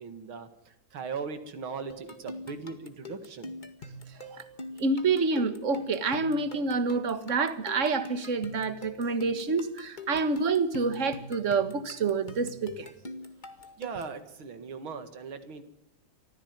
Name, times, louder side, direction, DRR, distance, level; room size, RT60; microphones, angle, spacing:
voice 1, 0.0-3.5 13.8-15.6, right 5 dB, 85° right, 10 dB, 2.7 m, -39 dB
sound 1, 1.9-14.2, left 1 dB, 25° left, 1.9 m, -43 dB
voice 2, 4.8-12.9, right 4 dB, 40° right, 12 dB, 1.8 m, -28 dB
25.0 x 15.0 x 9.5 m, 0.78 s
omnidirectional pair, 2.2 m